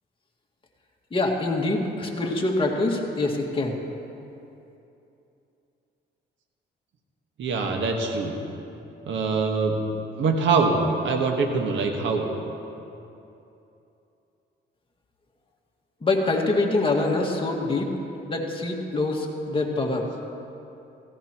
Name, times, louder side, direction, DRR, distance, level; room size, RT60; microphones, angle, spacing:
voice 1, 1.1-3.8 16.0-17.9 18.3-20.1, left 2 dB, 25° left, 0 dB, 1.9 m, -25 dB
voice 2, 7.4-8.3 9.1-9.7 10.2-10.8 11.0-12.2, right 4 dB, 70° right, 2 dB, 1.5 m, -23 dB
16.5 x 16.5 x 3.0 m, 2.8 s
cardioid pair, 90°, 20 cm